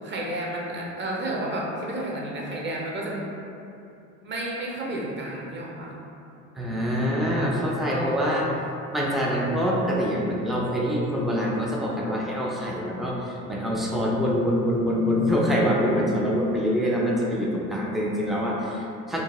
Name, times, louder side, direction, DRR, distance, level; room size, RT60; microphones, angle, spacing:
voice 1, 0.0-3.3 4.2-6.0 7.8-8.5, right 1 dB, 30° right, -3 dB, 0.7 m, -31 dB
voice 2, 6.6-8.5 8.9-19.2, equal, ahead, -4 dB, 0.3 m, -25 dB
2.6 x 2.2 x 3.0 m, 2.6 s
hypercardioid pair, 70°, 37 cm